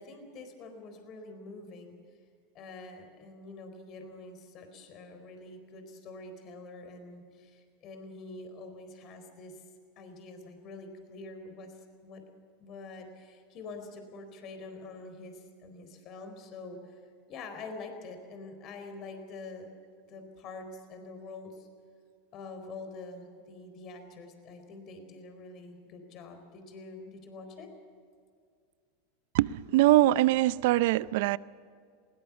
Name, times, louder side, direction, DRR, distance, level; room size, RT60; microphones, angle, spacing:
voice 1, 0.0-2.0 2.5-9.6 10.0-11.7 12.0-12.2 12.6-17.0 17.3-19.7 20.1-21.7 22.3-27.7, left 3 dB, 45° left, 7 dB, 4.2 m, -46 dB
voice 2, 29.3-31.4, right 16 dB, 65° right, 19 dB, 0.5 m, -23 dB
20.5 x 18.5 x 7.2 m, 2.2 s
hypercardioid pair, 105°, 0 cm